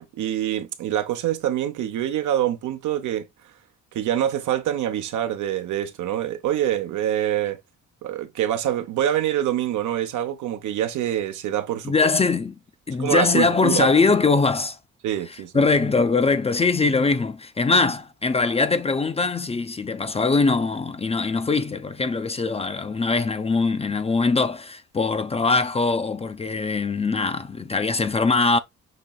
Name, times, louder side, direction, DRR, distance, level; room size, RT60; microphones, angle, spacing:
voice 1, 0.1-3.3 3.9-7.6 8.0-11.9 13.0-13.9 15.0-15.7 16.8-16.9, right 11 dB, 75° right, 0.8 m, -25 dB
voice 2, 11.8-12.5 12.9-14.8 15.5-28.6, left 4 dB, 20° left, 0.4 m, -22 dB
6.0 x 2.9 x 2.3 m
cardioid pair, 90°, 30 cm